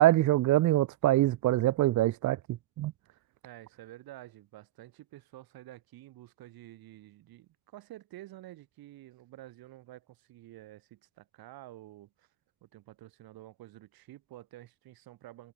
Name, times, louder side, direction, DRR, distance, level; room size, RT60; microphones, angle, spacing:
voice 1, 0.0-2.4 2.8-2.9, right 15 dB, 55° right, 0.5 m, -24 dB
voice 2, 3.1-12.3 12.6-15.5, right 15 dB, 90° right, 4.5 m, -50 dB
cardioid pair, 130°, 35 cm